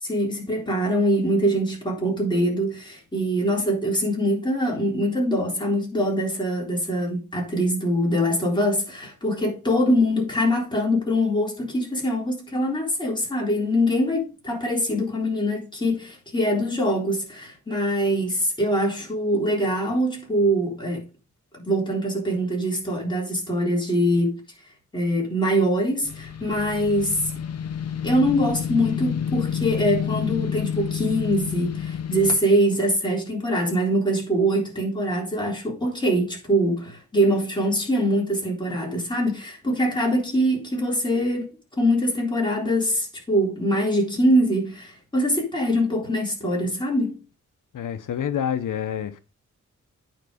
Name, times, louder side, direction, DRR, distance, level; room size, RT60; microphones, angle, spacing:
voice 1, 0.0-21.0 21.5-24.4 24.9-27.2 28.0-41.5 41.8-47.2, equal, 15° left, 3.7 m, -23 dB
sound 1, 26.0-32.4, left 8 dB, 55° left, 0.8 m, -29 dB
voice 2, 47.7-49.2, left 9 dB, 85° left, 0.8 m, -27 dB
9.2 x 4.8 x 4.9 m
wide cardioid pair, 125°, 31 cm